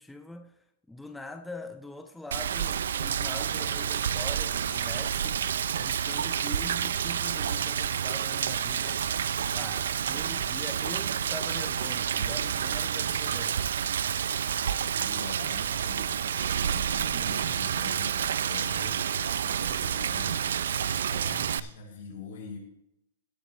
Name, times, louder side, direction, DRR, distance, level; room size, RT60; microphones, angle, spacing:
voice 1, 0.0-13.7, left 2 dB, 5° left, 0.4 m, -43 dB
Rain, 2.3-21.6, right 8 dB, 90° right, 0.4 m, -29 dB
voice 2, 15.0-16.1 16.7-19.1 19.4-22.6, left 3 dB, 70° left, 4.9 m, -44 dB
16.5 x 8.5 x 3.2 m
supercardioid pair, 165°, 0 cm